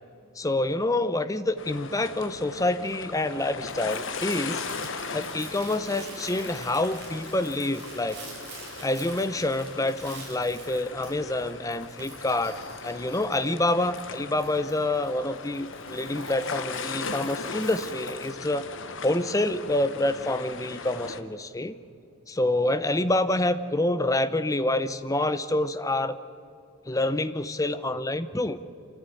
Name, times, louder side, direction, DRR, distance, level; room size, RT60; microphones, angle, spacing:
voice 1, 0.4-4.6 5.1-8.2 8.8-12.6 12.8-18.7 19.0-21.7 22.3-26.2 26.9-28.6, left 2 dB, 15° left, 12 dB, 0.7 m, -27 dB
sound 1, 1.6-21.2, left 4 dB, 60° left, 1.3 m, -38 dB
Crumpling crinkling, 1.9-18.3, right 3 dB, 50° right, 6.2 m, -47 dB
25.5 x 15.5 x 9.4 m, 2.6 s
head